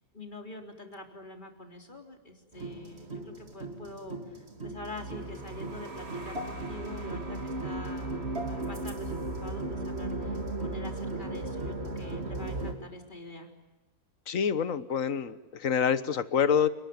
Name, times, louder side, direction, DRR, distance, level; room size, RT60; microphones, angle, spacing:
voice 1, 0.1-13.5, left 2 dB, 30° left, 3 dB, 3.9 m, -45 dB
sound 1, 2.5-12.7, right 2 dB, 40° right, 3.0 m, -36 dB
voice 2, 14.3-16.7, left 7 dB, 55° left, 14 dB, 1.5 m, -27 dB
29.5 x 19.5 x 9.5 m, 1.1 s
omnidirectional pair, 1.7 m